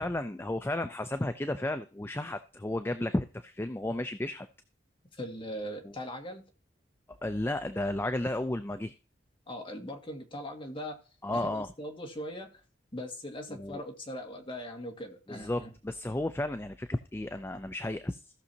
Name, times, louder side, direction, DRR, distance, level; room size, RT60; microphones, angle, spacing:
voice 1, 0.0-4.5 7.1-9.0 11.2-11.7 13.5-13.8 15.3-18.2, left 1 dB, 15° left, 0.4 m, -33 dB
voice 2, 5.1-6.4 9.5-11.0 11.3-12.5 12.9-15.7, equal, 30° left, 1.9 m, -40 dB
16.5 x 6.3 x 2.8 m
head